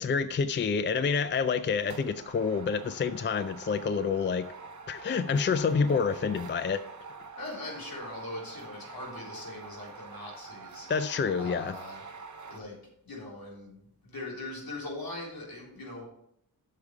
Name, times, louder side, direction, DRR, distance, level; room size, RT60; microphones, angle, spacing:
voice 1, 0.0-4.4 4.9-6.8 10.9-11.7, left 5 dB, 30° left, 12 dB, 0.4 m, -28 dB
sound 1, 1.0-1.3 1.8-12.6, right 4 dB, 50° right, 0.8 m, -46 dB
voice 2, 7.4-10.9 11.4-12.0 12.5-12.8 13.0-16.0, left 2 dB, 70° left, -3 dB, 3.9 m, -41 dB
8.5 x 6.6 x 4.8 m, 0.74 s
wide cardioid pair, 135°, 37 cm